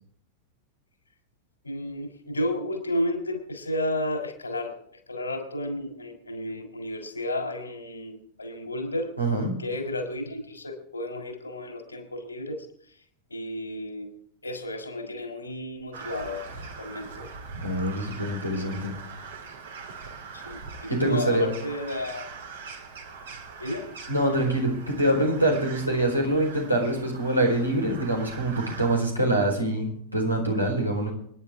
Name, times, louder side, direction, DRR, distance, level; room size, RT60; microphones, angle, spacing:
voice 1, 1.6-4.7 5.1-9.1 9.6-12.7 13.3-14.1 14.4-16.4 16.8-17.3 18.5-18.8 20.3-22.3 23.6-23.9, left 1 dB, 80° left, 5 dB, 3.4 m, -32 dB
voice 2, 9.2-9.5 17.5-18.9 20.9-21.5 24.1-31.1, right 1 dB, 90° right, 0 dB, 4.3 m, -25 dB
Crow, 15.9-29.0, right 5 dB, 65° right, 2.4 m, -42 dB
26.5 x 10.5 x 3.6 m, 0.63 s
figure-of-eight pair, 90°, 0 cm